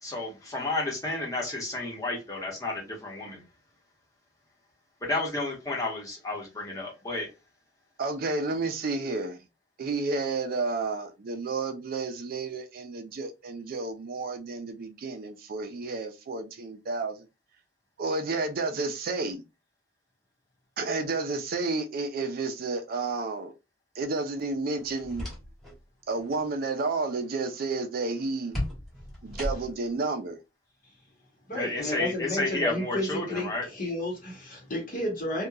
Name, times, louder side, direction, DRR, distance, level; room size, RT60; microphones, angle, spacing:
voice 1, 0.0-3.4 5.0-7.3 31.5-33.7, left 2 dB, 20° left, 1.0 m, -31 dB
voice 2, 8.0-9.4 9.8-17.2 18.0-19.4 20.8-23.5 24.0-25.3 26.1-28.6 29.2-30.4, right 3 dB, 55° right, 0.4 m, -31 dB
sound 1, 24.8-25.8 26.1-26.5 28.5-29.9, left 1 dB, ahead, 1.1 m, -35 dB
voice 3, 31.5-35.5, left 1 dB, 50° left, 1.0 m, -32 dB
2.8 x 2.2 x 2.3 m
head